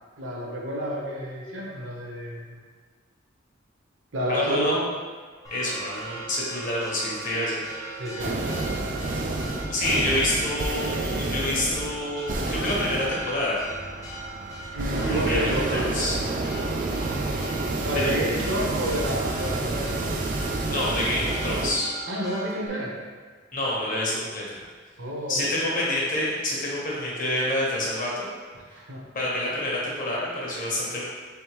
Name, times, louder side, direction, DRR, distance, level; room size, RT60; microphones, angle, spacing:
voice 1, 0.2-2.6 4.1-4.8 8.0-8.5 14.7-15.9 17.8-20.1 22.1-22.9 25.0-25.4 28.7-29.0, equal, 80° right, -3 dB, 0.9 m, -29 dB
voice 2, 4.3-4.7 5.5-8.0 9.7-13.6 15.1-16.2 18.0-18.1 20.7-21.9 23.5-24.6 25.3-28.3 29.1-31.0, left 1 dB, 45° left, -5 dB, 1.0 m, -27 dB
Church bell, 5.4-22.7, right 2 dB, 20° left, 0.7 m, -39 dB
sound 1, 8.2-21.7, right 2 dB, 45° right, 0.4 m, -29 dB
3.9 x 3.5 x 3.0 m, 1.5 s
head